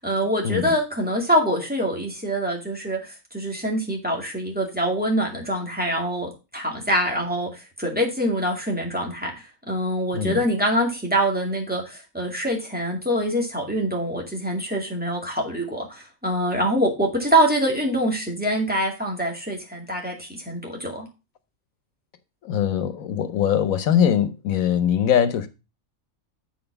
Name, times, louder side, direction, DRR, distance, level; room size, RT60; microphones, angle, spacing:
voice 1, 0.0-9.3 9.7-21.1, equal, 5° right, 2.1 m, -25 dB
voice 2, 22.4-25.5, left 9 dB, 90° left, 1.3 m, -22 dB
7.5 x 4.6 x 5.8 m
omnidirectional pair, 1.4 m